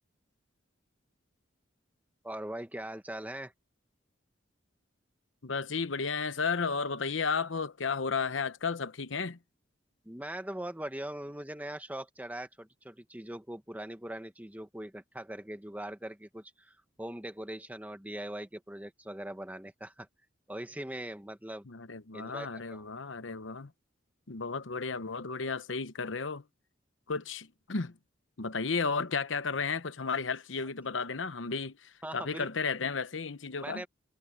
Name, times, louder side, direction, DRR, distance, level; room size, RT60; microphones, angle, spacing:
voice 1, 2.2-3.5 10.0-20.1 20.5-21.7 22.1-22.8 32.0-32.5 33.6-33.9, right 1 dB, 10° right, 1.5 m, -41 dB
voice 2, 5.4-9.4 21.7-23.7 24.3-26.4 27.1-28.0 28.4-33.8, left 5 dB, 80° left, 0.9 m, -33 dB
head